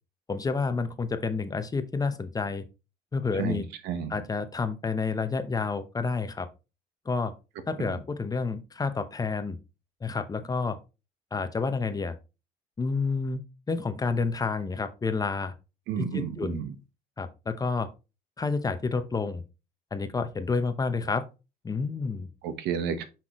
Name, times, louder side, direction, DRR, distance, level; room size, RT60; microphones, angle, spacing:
voice 1, 0.3-2.6 3.1-3.7 4.1-6.5 7.1-7.3 7.7-9.6 10.0-10.8 11.3-12.2 12.8-15.5 16.0-16.6 17.2-17.9 18.4-19.4 19.9-21.3 21.6-22.3, left 4 dB, 20° left, 11 dB, 0.8 m, -29 dB
voice 2, 3.4-4.1 15.9-16.7 22.4-23.0, right 8 dB, 85° right, 10 dB, 1.1 m, -31 dB
6.0 x 5.8 x 3.0 m, 0.28 s
cardioid pair, 110°, 17 cm